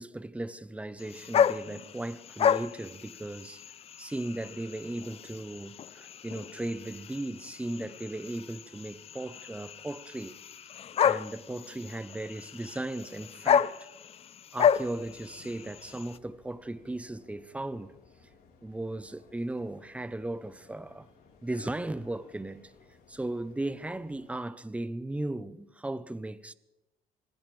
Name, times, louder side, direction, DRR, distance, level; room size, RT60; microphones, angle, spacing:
voice 1, 0.0-3.6 4.0-10.4 11.0-13.7 14.5-17.9 18.6-21.1 21.4-22.7 23.1-26.5, right 2 dB, 10° right, 0.7 m, -37 dB
sound 1, 1.0-16.2, left 8 dB, 35° left, 0.4 m, -31 dB
sound 2, 14.6-24.4, left 4 dB, 65° left, 3.9 m, -59 dB
25.0 x 16.5 x 3.2 m
cardioid pair, 110°, 17 cm